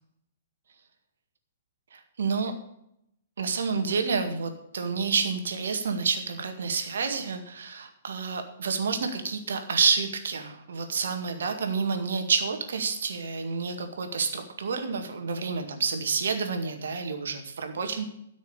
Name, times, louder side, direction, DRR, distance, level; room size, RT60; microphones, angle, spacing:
voice 1, 1.9-2.5 3.4-18.1, right 5 dB, 65° right, 6 dB, 2.0 m, -29 dB
13.0 x 6.4 x 6.7 m, 0.77 s
figure-of-eight pair, 115°, 0 cm